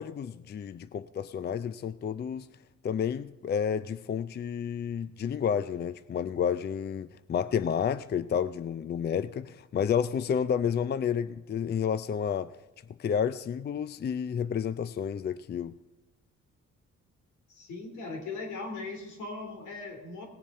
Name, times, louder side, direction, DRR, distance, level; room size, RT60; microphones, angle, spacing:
voice 1, 0.0-2.5 2.8-12.5 13.0-15.7, left 7 dB, 35° left, 15 dB, 0.4 m, -30 dB
voice 2, 17.5-20.3, left 3 dB, 80° left, 3 dB, 3.1 m, -39 dB
18.0 x 7.2 x 5.5 m, 1.1 s
cardioid pair, 90°, 30 cm